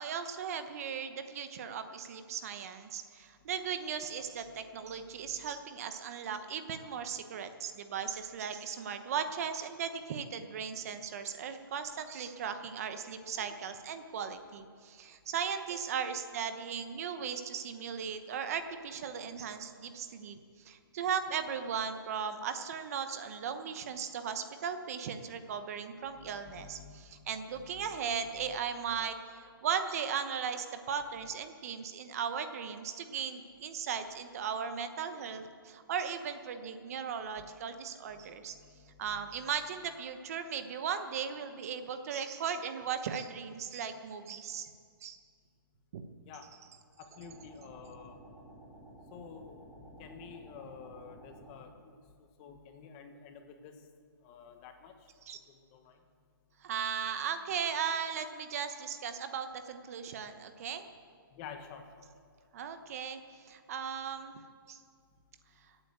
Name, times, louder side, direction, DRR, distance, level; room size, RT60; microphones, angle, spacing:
voice 1, 0.0-38.5 39.0-44.7 45.0-45.2 45.9-46.0 55.2-55.4 56.6-60.8 62.5-64.4 64.7-64.8, right 7 dB, 40° right, 9 dB, 1.0 m, -37 dB
voice 2, 26.2-27.3 27.6-27.9 28.4-28.5 38.1-38.2 38.5-39.2 46.2-46.5 47.0-48.2 49.1-52.0 52.4-53.9 54.2-54.9 55.5-56.0 61.3-62.1, left 6 dB, 25° left, 6 dB, 1.2 m, -50 dB
sound 1, 47.1-51.6, right 1 dB, 15° right, 4.5 m, -53 dB
16.0 x 8.9 x 8.0 m, 2.1 s
hypercardioid pair, 160°, 12 cm